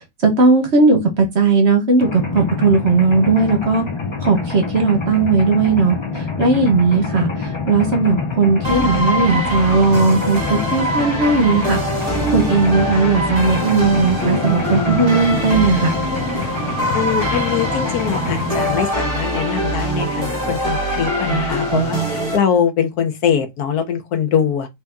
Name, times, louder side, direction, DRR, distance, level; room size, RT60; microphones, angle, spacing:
voice 1, 0.2-3.8 4.2-15.9, right 4 dB, 50° right, 1.1 m, -17 dB
Mechanisms, 2.0-18.9, left 4 dB, 35° left, 0.5 m, -26 dB
sound 1, 8.6-22.4, right 1 dB, 20° right, 1.3 m, -23 dB
voice 2, 16.9-24.7, left 8 dB, 80° left, 1.4 m, -22 dB
3.4 x 2.8 x 3.5 m
omnidirectional pair, 1.6 m